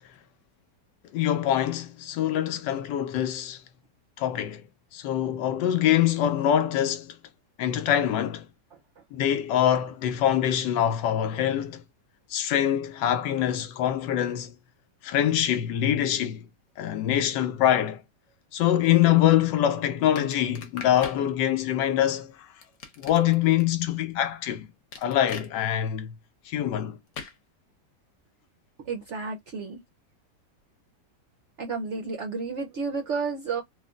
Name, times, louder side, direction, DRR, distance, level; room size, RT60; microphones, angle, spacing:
voice 1, 1.1-3.6 4.2-4.6 4.9-7.2 7.6-8.5 9.1-11.8 12.3-14.5 15.0-16.5 16.8-18.0 18.5-22.5 23.0-24.7 25.0-26.1 26.5-27.0, left 11 dB, 85° left, 1.3 m, -24 dB
sound 1, 20.2-21.2 22.6-23.6 24.9-25.5 27.1-27.4, left 5 dB, 55° left, 1.0 m, -40 dB
voice 2, 28.8-29.8 31.6-33.6, right 4 dB, 65° right, 0.7 m, -31 dB
3.1 x 2.4 x 2.3 m
omnidirectional pair, 1.9 m